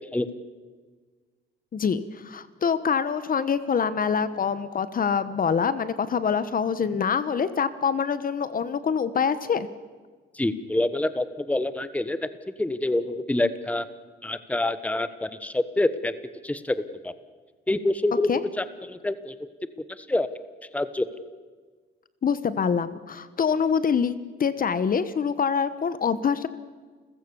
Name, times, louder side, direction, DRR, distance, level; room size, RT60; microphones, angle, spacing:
voice 1, 1.7-9.7 18.3-18.4 22.2-24.1 24.4-26.5, left 6 dB, 45° left, 14 dB, 1.2 m, -25 dB
voice 2, 10.4-12.2 12.6-13.9 14.2-16.1 16.4-16.8 17.0-17.1 17.7-18.3 18.6-19.3 20.0-20.3 20.7-21.1, left 2 dB, 5° left, 13 dB, 1.2 m, -26 dB
29.5 x 15.0 x 7.1 m, 1.5 s
cardioid pair, 90°, 20 cm